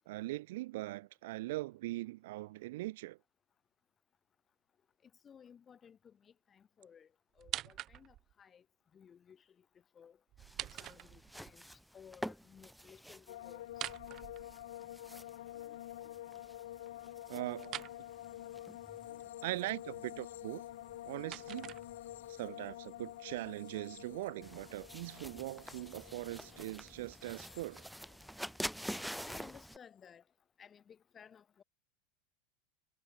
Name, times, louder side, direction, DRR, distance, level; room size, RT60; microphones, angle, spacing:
voice 1, 0.1-3.2 17.3-17.9 19.4-20.6 21.1-21.7 22.3-27.9, right 18 dB, 60° right, 1.8 m, -41 dB
voice 2, 5.0-7.1 7.4-8.6 8.9-9.7 9.9-10.2 10.6-13.9 15.5-16.1 29.3-30.2 30.6-31.6, left 7 dB, 25° left, 7.5 m, -58 dB
sound 1, 7.4-8.3 10.3-11.5 13.7-15.0 17.6-18.0 20.7-22.3, right 13 dB, 40° right, 5.3 m, -45 dB
sound 2, 10.4-29.8, equal, ahead, 4.4 m, -49 dB
sound 3, 13.3-28.5 28.8-29.4, left 14 dB, 65° left, 2.8 m, -49 dB
figure-of-eight pair, 80°, 0 cm